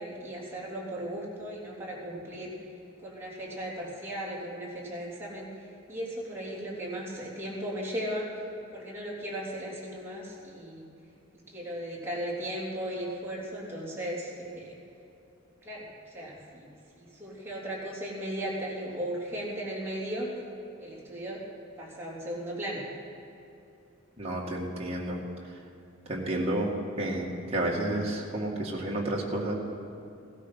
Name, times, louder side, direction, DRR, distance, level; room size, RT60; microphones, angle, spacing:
voice 1, 0.0-2.5 3.0-5.5 5.9-8.3 8.7-10.9 11.5-14.7 15.6-15.8 16.1-16.7 17.0-20.3 20.8-21.4 21.8-22.8, right 1 dB, 10° right, -6 dB, 3.3 m, -36 dB
voice 2, 24.2-25.2 26.1-29.5, right 1 dB, 30° right, -3 dB, 2.1 m, -31 dB
16.5 x 13.0 x 5.7 m, 2.7 s
head